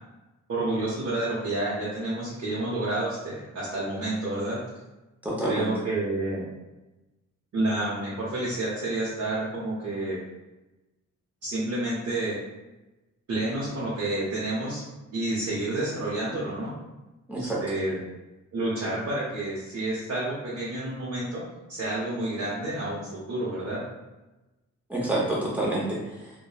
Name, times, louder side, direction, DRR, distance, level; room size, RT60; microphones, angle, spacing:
voice 1, 0.5-4.6 5.4-6.5 7.5-10.2 11.4-12.4 13.3-14.8 15.1-16.7 17.4-18.0 18.5-21.4 21.7-23.8, right 2 dB, 55° right, -8 dB, 0.7 m, -29 dB
voice 2, 5.2-5.7 17.3-17.6 24.9-26.3, right 1 dB, 5° right, -6 dB, 0.7 m, -28 dB
3.0 x 2.1 x 2.3 m, 1.0 s
wide cardioid pair, 140°, 30 cm